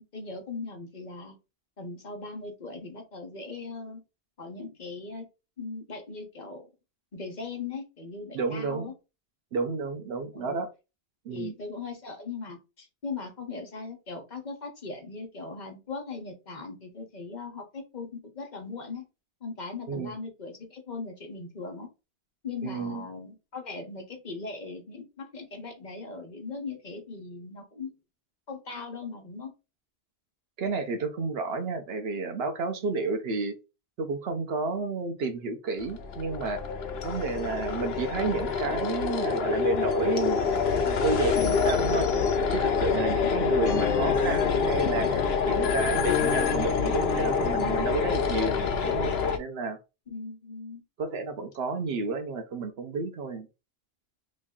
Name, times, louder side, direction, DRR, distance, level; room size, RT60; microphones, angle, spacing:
voice 1, 0.0-1.4 1.8-4.0 4.4-5.2 5.6-6.6 7.1-8.9 10.3-10.6 11.3-19.0 19.4-21.9 22.4-27.9 28.5-29.5 43.5-43.7 50.1-50.8, left 4 dB, 45° left, 1.0 m, -39 dB
voice 2, 8.3-8.9 9.5-10.7 11.2-11.5 19.9-20.1 22.6-23.0 30.6-33.6 34.0-36.6 37.0-42.1 42.5-48.6 48.8-49.8 51.0-53.5, right 4 dB, 70° right, 0.9 m, -31 dB
sound 1, 35.8-49.4, left 6 dB, 70° left, 0.9 m, -26 dB
3.1 x 2.6 x 3.6 m
omnidirectional pair, 1.1 m